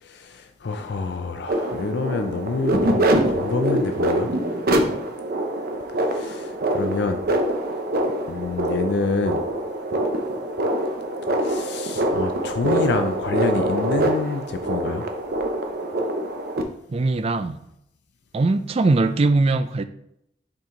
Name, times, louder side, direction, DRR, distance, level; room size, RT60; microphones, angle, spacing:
voice 1, 0.0-4.3 6.0-7.2 8.3-9.4 11.4-15.0, left 4 dB, 65° left, 7 dB, 0.4 m, -27 dB
sound 1, 1.5-16.6, right 1 dB, 55° right, 0.7 m, -24 dB
voice 2, 16.9-17.6 18.3-19.8, right 3 dB, 35° right, 10 dB, 0.4 m, -20 dB
6.1 x 4.5 x 3.8 m, 0.75 s
head